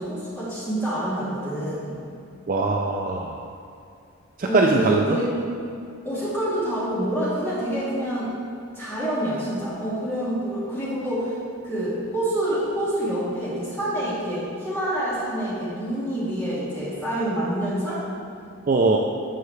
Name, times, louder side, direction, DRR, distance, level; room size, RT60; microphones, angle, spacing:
voice 1, 0.0-1.9 4.4-5.3 6.0-8.3 8.7-11.4 11.6-18.0, right 1 dB, 10° left, -10 dB, 2.1 m, -27 dB
voice 2, 2.5-3.5 4.4-5.2 18.7-19.0, right 3 dB, 40° right, 1 dB, 0.4 m, -21 dB
11.0 x 6.7 x 3.3 m, 2.4 s
head